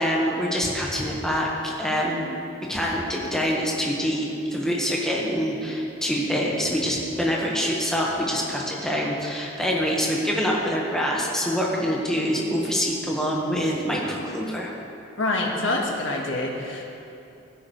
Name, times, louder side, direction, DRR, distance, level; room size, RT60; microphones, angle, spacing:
voice 1, 0.0-2.3 2.7-14.7, equal, 5° left, -3 dB, 1.5 m, -25 dB
voice 2, 15.2-16.8, left 2 dB, 70° left, -1 dB, 1.7 m, -26 dB
16.5 x 9.7 x 3.3 m, 2.7 s
head